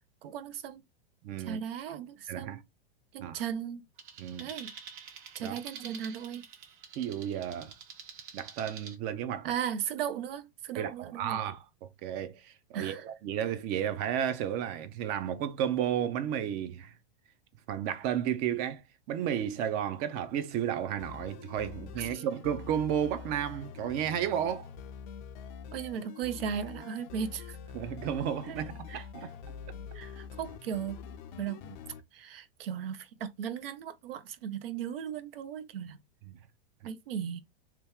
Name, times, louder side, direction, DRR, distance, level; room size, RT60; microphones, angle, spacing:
voice 1, 0.2-0.8 1.4-2.6 3.1-3.8 4.4-4.7 5.3-6.4 9.4-11.4 12.7-13.0 22.0-22.2 25.7-27.6 28.5-28.6 28.9-29.0 29.9-31.0 31.4-31.8 32.1-36.0 36.8-37.4, right 8 dB, 80° right, 0.6 m, -37 dB
voice 2, 1.2-1.6 2.3-2.6 3.2-3.4 4.2-4.5 5.4-5.6 7.0-7.7 8.3-9.5 10.8-16.9 17.7-18.8 19.1-24.7 27.7-29.3 36.3-36.4, right 9 dB, 35° right, 0.4 m, -33 dB
sound 1, 4.0-9.0, right 6 dB, 60° right, 1.0 m, -47 dB
sound 2, 21.0-32.0, left 7 dB, 55° left, 0.5 m, -45 dB
2.9 x 2.3 x 3.4 m
hypercardioid pair, 135°, 29 cm